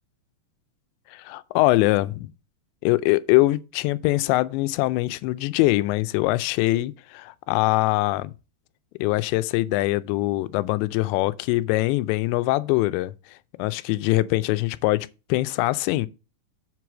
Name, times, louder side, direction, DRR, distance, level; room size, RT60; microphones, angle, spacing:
voice 1, 1.1-2.3 2.8-8.3 9.0-13.1 13.6-16.1, left 19 dB, 85° left, 2.8 m, -23 dB
7.5 x 4.7 x 6.0 m
omnidirectional pair, 5.1 m